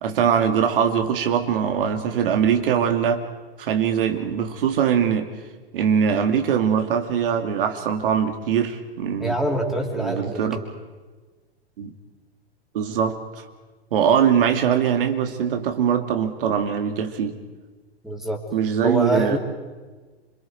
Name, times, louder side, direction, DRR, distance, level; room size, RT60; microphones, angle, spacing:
voice 1, 0.0-3.2 3.6-5.3 5.7-9.4 9.9-10.6 11.8-11.9 12.7-13.2 13.9-17.4 18.5-19.4, right 8 dB, 55° right, 5 dB, 2.7 m, -22 dB
voice 2, 9.2-10.6 18.0-18.4 18.8-19.4, right 1 dB, ahead, 0 dB, 3.6 m, -25 dB
29.5 x 26.0 x 4.7 m, 1.3 s
figure-of-eight pair, 100°, 32 cm